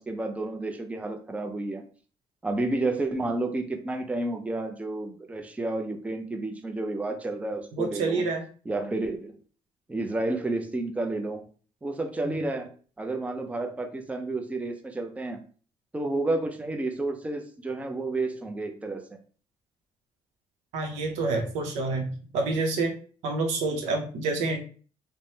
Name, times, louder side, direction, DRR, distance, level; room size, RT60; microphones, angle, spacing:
voice 1, 0.0-1.8 2.4-8.2 8.7-9.4 9.9-11.4 11.8-12.7 13.0-15.4 15.9-19.2, right 2 dB, 10° right, 5 dB, 0.5 m, -31 dB
voice 2, 7.7-8.4 12.2-12.5 20.7-22.9 23.2-24.6, right 3 dB, 90° right, 4 dB, 0.6 m, -28 dB
3.1 x 2.1 x 2.7 m, 0.41 s
cardioid pair, 80°, 12 cm